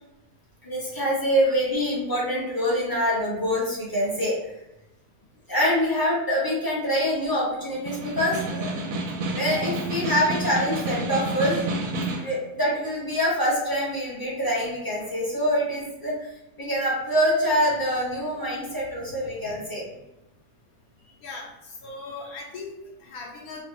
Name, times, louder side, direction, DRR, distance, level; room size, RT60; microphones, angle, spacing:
voice 1, 0.6-4.3 5.5-8.8 9.3-11.6 12.2-16.3 16.6-19.8, equal, 20° left, -6 dB, 0.7 m, -25 dB
Snare drum, 7.7-12.4, right 1 dB, 90° right, 1.1 m, -29 dB
voice 2, 21.8-23.6, left 3 dB, 75° left, -1 dB, 1.2 m, -38 dB
3.3 x 2.2 x 2.9 m, 0.93 s
omnidirectional pair, 1.6 m